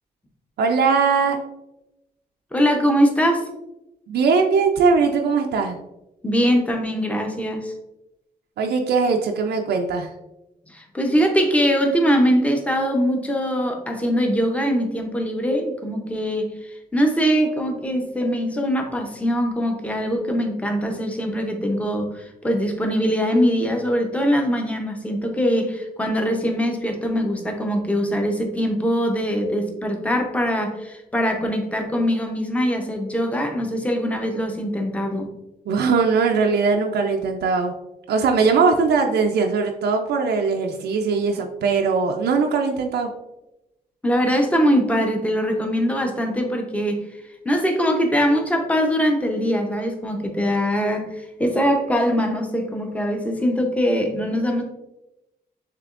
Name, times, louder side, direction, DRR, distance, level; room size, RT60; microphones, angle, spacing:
voice 1, 0.6-1.4 4.1-5.8 8.6-10.1 35.7-37.7 38.1-43.1, right 5 dB, 85° right, 2 dB, 0.4 m, -20 dB
voice 2, 2.5-3.5 6.2-7.7 10.7-35.3 44.0-47.0 47.4-54.6, equal, 10° left, 3 dB, 0.7 m, -22 dB
6.7 x 2.9 x 2.4 m, 0.93 s
wide cardioid pair, 130°, 17 cm